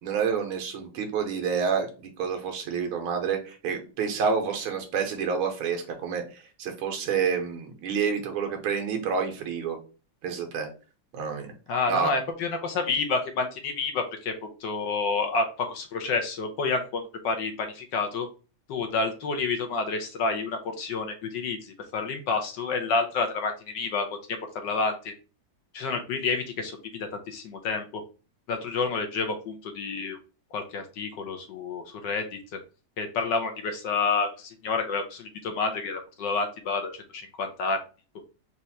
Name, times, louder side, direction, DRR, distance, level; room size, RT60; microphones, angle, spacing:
voice 1, 0.0-9.8 10.2-10.7 11.1-11.5 11.9-12.1, right 6 dB, 85° right, 4 dB, 1.8 m, -28 dB
voice 2, 11.7-18.3 18.7-25.1 25.7-28.0 28.5-30.2 30.5-32.4 33.0-37.8, left 4 dB, 70° left, 5 dB, 1.2 m, -29 dB
4.4 x 2.5 x 4.1 m, 0.34 s
omnidirectional pair, 2.3 m